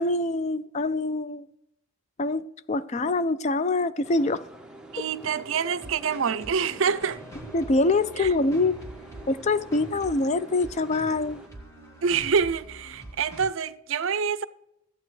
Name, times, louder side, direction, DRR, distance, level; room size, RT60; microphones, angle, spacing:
voice 1, 0.0-1.5 2.2-4.4 7.5-8.8 9.3-11.4, left 2 dB, 30° left, 0.4 m, -25 dB
sound 1, 4.0-11.5, right 2 dB, 5° right, 0.9 m, -47 dB
voice 2, 4.9-7.2 8.2-8.3 12.0-14.4, right 6 dB, 60° right, 0.5 m, -26 dB
sound 2, 5.7-13.5, right 1 dB, 15° left, 1.8 m, -44 dB
14.5 x 8.9 x 3.2 m
head